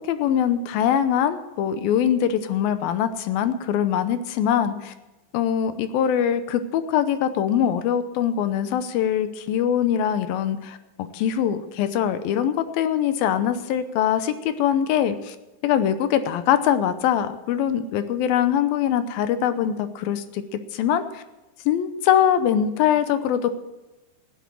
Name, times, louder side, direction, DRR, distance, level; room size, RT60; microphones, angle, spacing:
voice 1, 0.1-4.9 5.3-15.4 15.6-21.2 21.7-23.5, left 9 dB, 75° left, 11 dB, 2.5 m, -23 dB
16.5 x 8.4 x 7.6 m, 1.0 s
omnidirectional pair, 4.6 m